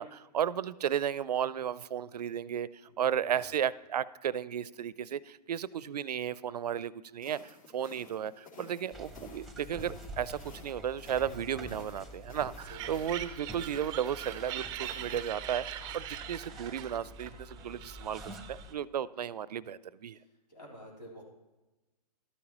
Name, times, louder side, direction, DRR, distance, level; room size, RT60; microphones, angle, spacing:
voice 1, 0.0-2.7 3.0-18.2 18.5-20.2, right 9 dB, 80° right, 20 dB, 0.4 m, -34 dB
voice 2, 2.9-3.5 12.7-13.2 20.1-21.2, equal, 85° left, -3 dB, 3.8 m, -51 dB
sound 1, 7.2-15.3, left 3 dB, 60° left, 2.8 m, -54 dB
sound 2, 8.9-18.7, equal, ahead, 0.8 m, -48 dB
sound 3, 12.7-18.7, right 12 dB, 20° right, 0.4 m, -42 dB
12.5 x 9.6 x 3.0 m, 1.1 s
hypercardioid pair, 125°, 20 cm